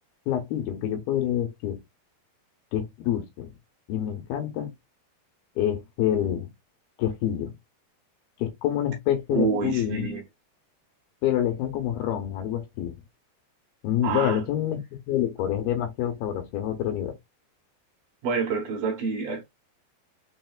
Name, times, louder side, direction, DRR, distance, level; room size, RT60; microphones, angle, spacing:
voice 1, 0.3-1.8 2.7-3.5 3.9-4.7 5.6-6.5 7.0-7.5 8.4-10.1 11.2-13.0 13.8-17.2, left 11 dB, 75° left, 2.5 m, -27 dB
voice 2, 9.3-10.2 14.0-14.4 18.2-19.4, right 5 dB, 70° right, 2.6 m, -27 dB
6.3 x 2.5 x 2.3 m
omnidirectional pair, 4.6 m